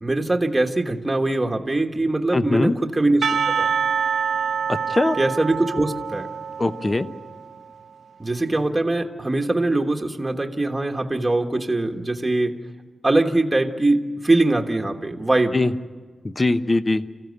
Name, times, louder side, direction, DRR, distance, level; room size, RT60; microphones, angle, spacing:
voice 1, 0.0-3.7 5.2-6.3 8.2-12.5 13.0-15.6, right 2 dB, 15° right, 3 dB, 1.3 m, -22 dB
voice 2, 2.3-2.7 4.9-5.2 6.6-7.1 15.5-15.7 16.2-17.0, left 2 dB, 25° left, 12 dB, 0.8 m, -21 dB
Percussion / Church bell, 3.2-7.6, right 7 dB, 70° right, 0.8 m, -26 dB
27.5 x 15.5 x 9.4 m, 1.5 s
wide cardioid pair, 180°, 0 cm